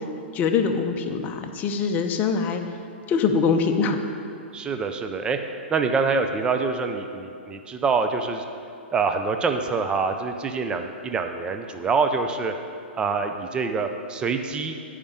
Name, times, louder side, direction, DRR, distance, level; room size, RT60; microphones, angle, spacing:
voice 1, 0.3-2.6 3.1-4.0, left 5 dB, 25° left, 5 dB, 0.8 m, -23 dB
voice 2, 4.5-5.4 5.7-8.4 8.9-12.5 12.9-14.8, right 4 dB, 15° right, 6 dB, 0.5 m, -25 dB
10.5 x 5.1 x 7.2 m, 2.4 s
hypercardioid pair, 135°, 6 cm